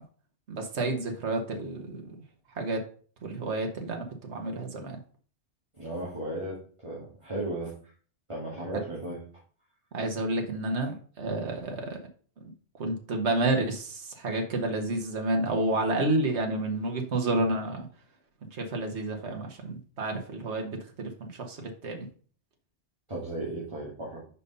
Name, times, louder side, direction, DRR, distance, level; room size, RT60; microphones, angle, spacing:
voice 1, 0.5-2.1 2.5-2.8 3.2-5.0 9.9-12.0 12.8-17.9 18.5-22.1, right 2 dB, 80° right, 3 dB, 1.6 m, -30 dB
voice 2, 5.7-7.7 8.3-9.2 23.1-24.2, right 1 dB, 25° right, -7 dB, 2.3 m, -35 dB
6.5 x 5.3 x 5.4 m, 0.43 s
omnidirectional pair, 1.1 m